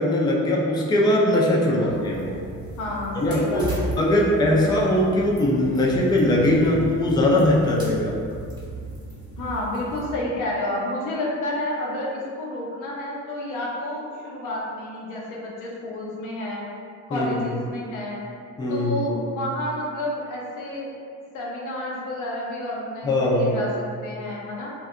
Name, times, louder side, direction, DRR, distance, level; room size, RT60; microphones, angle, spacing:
voice 1, 0.0-2.4 3.2-3.7 4.0-8.2 17.1-17.5 18.6-19.1 23.0-23.6, left 1 dB, 15° left, -3 dB, 0.4 m, -21 dB
sound 1, 1.9-10.1, right 2 dB, 15° right, 0.8 m, -36 dB
voice 2, 2.8-4.6 9.4-16.7 17.1-18.2 18.7-20.9 21.3-24.7, left 1 dB, 85° left, -4 dB, 0.6 m, -30 dB
2.6 x 2.2 x 2.4 m, 2.3 s
cardioid pair, 90°, 30 cm